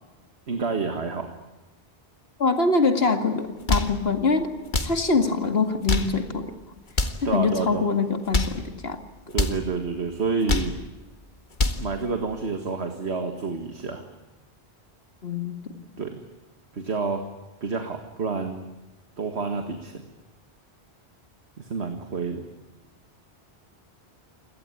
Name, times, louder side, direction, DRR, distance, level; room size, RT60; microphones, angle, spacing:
voice 1, 0.5-1.3 7.2-7.8 9.3-10.7 11.8-14.1 16.0-16.2 16.7-17.3 17.6-18.6 19.2-20.0 21.6-22.4, right 4 dB, 75° right, 6 dB, 2.0 m, -28 dB
voice 2, 2.4-4.5 4.8-6.5 7.3-9.0 15.2-15.6, left 4 dB, 65° left, 7 dB, 2.4 m, -24 dB
sound 1, 3.5-4.0 4.6-5.0 5.7-6.2 6.9-7.3 8.1-8.6 9.3-9.6 10.3-10.8 11.4-11.9, left 2 dB, 45° left, 1.8 m, -25 dB
28.0 x 18.0 x 9.8 m, 1.1 s
omnidirectional pair, 1.1 m